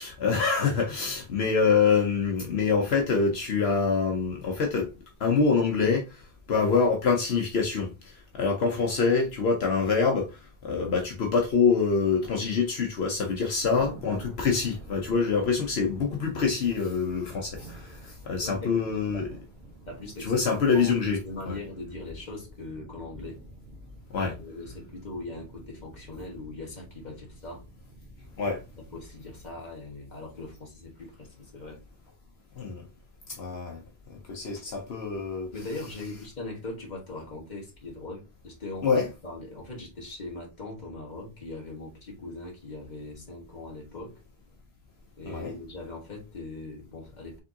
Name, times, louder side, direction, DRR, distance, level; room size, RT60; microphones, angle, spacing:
voice 1, 0.0-4.9 5.2-19.3 20.2-21.2 21.5-21.6 24.1-24.4 28.4-28.6 32.6-32.8 33.3-33.8 34.1-35.5 38.8-39.1 45.2-45.6, left 5 dB, 75° left, 1.1 m, -25 dB
Thunder, 13.6-29.6, right 1 dB, 80° right, 1.4 m, -48 dB
voice 2, 18.4-19.2 19.9-20.3 20.7-23.4 24.2-27.6 28.9-31.8 35.5-44.2 45.2-47.4, left 2 dB, 45° left, 1.7 m, -40 dB
5.4 x 3.5 x 2.8 m
omnidirectional pair, 1.1 m